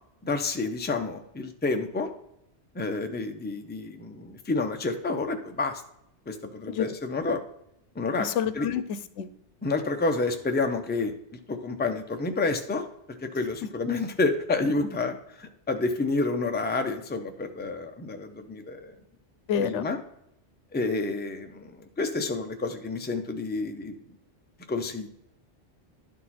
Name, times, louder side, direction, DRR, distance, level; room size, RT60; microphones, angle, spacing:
voice 1, 0.2-2.1 2.7-5.8 6.3-7.4 8.0-8.3 8.5-8.7 9.6-11.1 11.5-12.8 13.2-18.9 19.6-20.0 20.7-23.9 24.7-25.1, left 3 dB, 10° left, 5 dB, 0.5 m, -29 dB
voice 2, 8.2-9.3 14.8-14.9 19.5-19.9, left 8 dB, 90° left, 13 dB, 0.9 m, -29 dB
11.0 x 4.6 x 4.2 m, 0.78 s
omnidirectional pair, 1.2 m